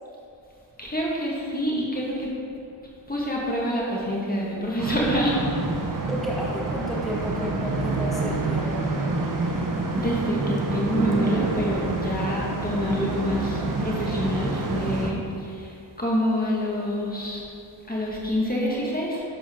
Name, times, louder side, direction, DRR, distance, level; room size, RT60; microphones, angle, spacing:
voice 1, 0.8-2.3 3.1-5.4 9.9-17.4 17.9-19.2, equal, 20° left, -4 dB, 2.0 m, -27 dB
sound 1, 4.8-15.1, right 2 dB, 45° right, 1.3 m, -27 dB
voice 2, 6.1-8.9 14.8-15.2, equal, ahead, -5 dB, 1.9 m, -32 dB
12.0 x 7.5 x 3.8 m, 2.5 s
cardioid pair, 80°, 46 cm